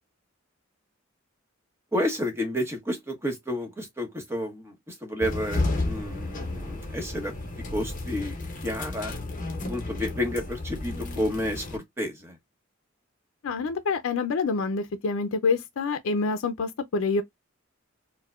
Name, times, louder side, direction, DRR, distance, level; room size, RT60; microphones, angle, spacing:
voice 1, 1.9-7.3 7.7-8.4 8.6-9.1 9.7-12.3, left 1 dB, 10° right, 0.9 m, -30 dB
sound 1, 5.2-11.8, left 2 dB, 40° left, 0.8 m, -32 dB
voice 2, 13.4-17.2, left 4 dB, 75° left, 0.4 m, -27 dB
4.5 x 2.1 x 2.3 m
head